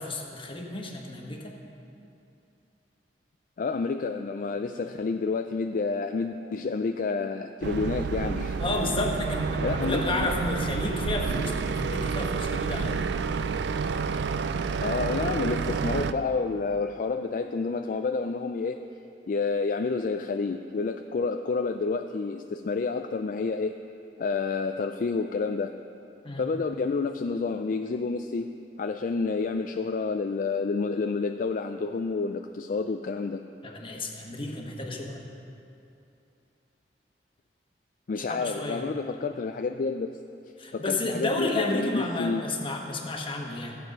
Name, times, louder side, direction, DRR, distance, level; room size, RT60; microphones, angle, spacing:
voice 1, 0.0-1.5 8.6-13.0 26.2-26.4 33.6-35.2 38.3-38.8 40.6-43.8, left 2 dB, 30° left, 1 dB, 1.2 m, -31 dB
voice 2, 3.6-8.6 9.6-10.3 14.8-18.8 19.3-23.8 24.2-25.7 26.4-28.5 28.8-33.4 38.1-40.2 40.7-42.4, left 4 dB, 50° left, 6 dB, 0.4 m, -29 dB
boat engine, 7.6-16.1, right 5 dB, 70° right, 0.4 m, -29 dB
14.5 x 8.0 x 5.4 m, 2.8 s
head